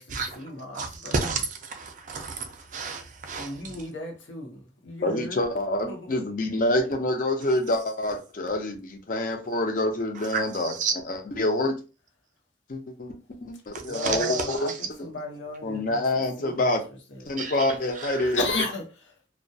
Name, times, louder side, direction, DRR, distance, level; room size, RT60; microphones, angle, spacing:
voice 1, 0.0-1.4 3.3-5.4 5.9-6.3 13.8-17.5 18.3-19.1, left 2 dB, 85° left, 0.7 m, -35 dB
voice 2, 0.7-3.8 10.2-11.0 13.7-14.8 17.4-17.7 18.0-18.4, right 4 dB, 45° right, 0.4 m, -32 dB
voice 3, 5.0-10.7 11.1-11.8 12.7-13.2 13.4-14.7 15.6-16.8 17.3-18.4, left 1 dB, 45° left, 0.5 m, -27 dB
2.2 x 2.1 x 2.6 m
head